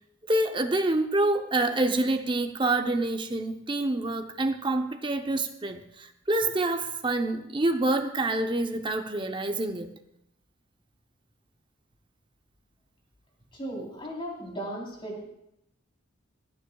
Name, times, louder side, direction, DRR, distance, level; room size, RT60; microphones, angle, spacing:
voice 1, 0.3-9.9, right 2 dB, 25° right, 6 dB, 0.8 m, -27 dB
voice 2, 13.5-15.3, right 1 dB, 25° left, -3 dB, 3.8 m, -36 dB
26.0 x 9.6 x 2.3 m, 0.82 s
head